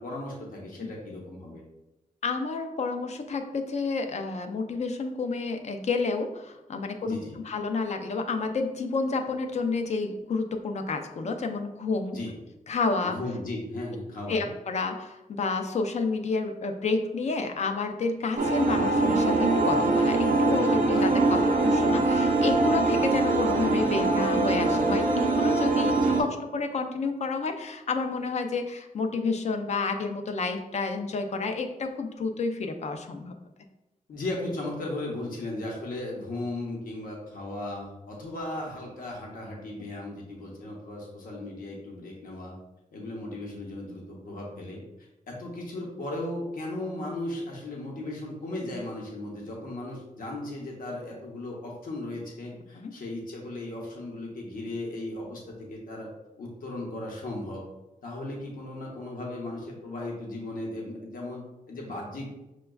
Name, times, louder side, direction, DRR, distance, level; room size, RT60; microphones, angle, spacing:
voice 1, 0.0-1.6 7.0-7.4 12.1-12.3 13.0-14.4 20.9-21.6 26.0-26.3 34.1-42.5 42.9-56.1 56.4-57.6 58.0-62.3, left 1 dB, 75° left, -2 dB, 0.8 m, -36 dB
voice 2, 2.2-12.2 12.7-13.2 14.3-33.3 52.8-52.9, left 4 dB, 50° left, 5 dB, 0.4 m, -30 dB
sound 1, 18.4-26.2, right 2 dB, 65° right, 0.5 m, -23 dB
5.9 x 2.2 x 2.2 m, 0.98 s
wide cardioid pair, 105°, 15 cm